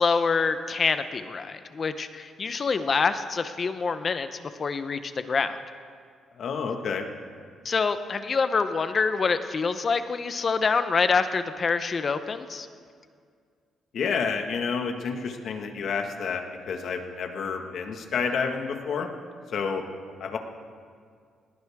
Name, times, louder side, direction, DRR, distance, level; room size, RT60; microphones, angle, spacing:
voice 1, 0.0-4.3 4.6-5.6 7.6-12.7, left 5 dB, 35° left, 10 dB, 0.7 m, -26 dB
voice 2, 6.4-7.1 13.9-19.1 19.5-19.8 20.2-20.4, left 5 dB, 60° left, 4 dB, 1.6 m, -29 dB
20.0 x 18.5 x 3.6 m, 2.1 s
cardioid pair, 135°, 0 cm